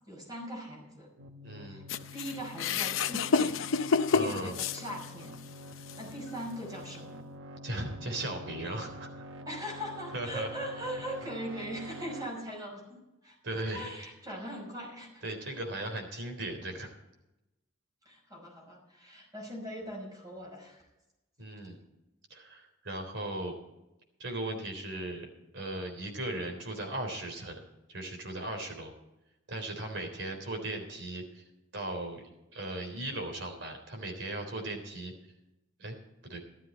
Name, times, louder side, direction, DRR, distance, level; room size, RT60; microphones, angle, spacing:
voice 1, 0.1-1.1 1.6-1.8 2.1-3.7 4.2-5.4 6.0-7.2 9.5-13.0 13.2-15.2 18.1-20.8, equal, 20° right, 0 dB, 5.6 m, -40 dB
sound 1, 1.2-12.3, equal, 90° right, 1.0 m, -47 dB
voice 2, 1.4-1.9 4.1-4.6 7.6-9.1 10.1-10.5 13.4-13.9 15.2-16.9 21.4-21.8 22.3-23.6 24.2-25.3 25.5-27.6 27.9-28.9 29.5-31.4 31.7-35.1 35.8-36.0 36.2-36.4, right 1 dB, 65° right, 3 dB, 3.6 m, -37 dB
sound 2, 1.9-5.3 5.9-6.0 6.9-7.0, left 5 dB, 85° left, 0.6 m, -29 dB
13.5 x 13.0 x 4.4 m, 0.94 s
head